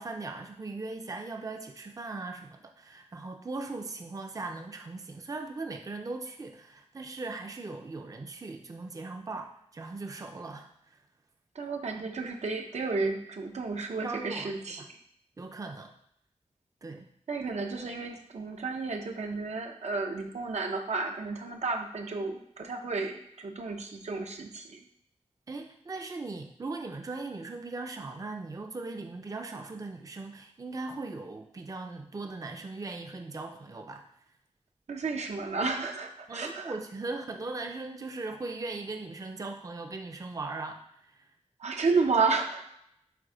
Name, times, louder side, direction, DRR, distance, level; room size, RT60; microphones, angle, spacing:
voice 1, 0.0-11.0 14.0-14.9 15.4-15.9 16.8-17.1 25.5-34.0 36.3-41.3, right 3 dB, 30° right, 4 dB, 0.5 m, -39 dB
voice 2, 11.5-14.8 17.3-24.8 34.9-36.8 41.6-42.6, right 4 dB, 75° right, 3 dB, 0.7 m, -32 dB
7.7 x 2.7 x 4.9 m, 0.74 s
wide cardioid pair, 110°, 12 cm